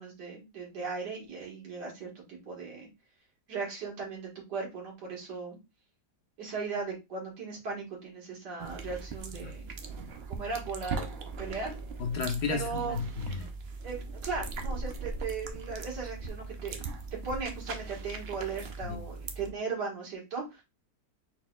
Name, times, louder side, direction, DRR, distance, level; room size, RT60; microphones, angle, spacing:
voice 1, 0.0-2.9 3.5-5.6 6.4-9.7 10.3-11.8 12.5-13.0 13.8-16.8 17.1-20.6, right 4 dB, 75° right, 2.3 m, -37 dB
sound 1, 8.6-19.5, right 3 dB, 60° right, 0.6 m, -39 dB
voice 2, 12.0-13.5 18.8-19.0, left 5 dB, 75° left, 1.4 m, -33 dB
4.6 x 4.1 x 2.3 m
omnidirectional pair, 1.8 m